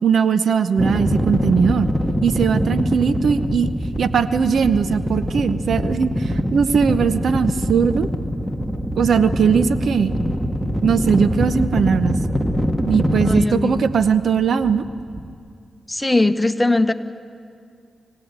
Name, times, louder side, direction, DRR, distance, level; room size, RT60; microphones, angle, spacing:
voice 1, 0.0-1.9 2.2-3.7 4.0-8.1 9.0-10.1 10.8-12.2 12.9-14.8, right 6 dB, 70° right, 12 dB, 0.8 m, -19 dB
sound 1, 0.8-15.3, equal, 5° right, 1.5 m, -23 dB
voice 2, 13.2-13.8 15.9-16.9, left 2 dB, 15° left, 9 dB, 1.1 m, -19 dB
25.5 x 17.0 x 8.9 m, 2.3 s
cardioid pair, 65°, 0 cm